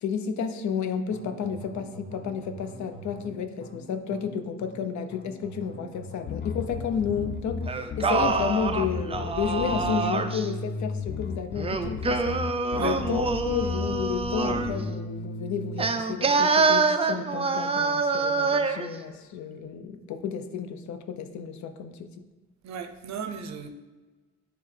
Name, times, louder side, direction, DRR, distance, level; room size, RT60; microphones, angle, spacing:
voice 1, 0.0-12.2 12.8-22.1, left 6 dB, 70° left, 0.7 m, -31 dB
sound 1, 1.1-9.0, left 1 dB, 20° left, 1.7 m, -45 dB
Bass guitar, 6.3-15.9, left 4 dB, 40° left, 0.4 m, -34 dB
Singing, 7.7-10.5 11.6-14.8 15.8-18.9, right 4 dB, 20° right, 0.4 m, -26 dB
voice 2, 22.6-23.7, right 7 dB, 65° right, 0.7 m, -36 dB
9.6 x 3.4 x 3.3 m
cardioid pair, 90°, 30 cm